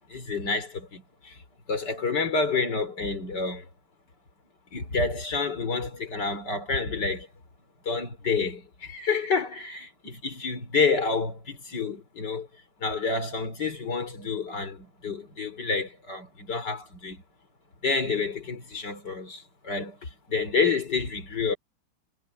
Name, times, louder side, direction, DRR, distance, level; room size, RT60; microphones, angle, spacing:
voice 1, 0.1-1.4 1.7-3.7 4.7-7.3 7.9-12.5 12.8-17.2 17.8-21.6, left 4 dB, 55° left, 4.3 m, -29 dB
omnidirectional pair, 2.2 m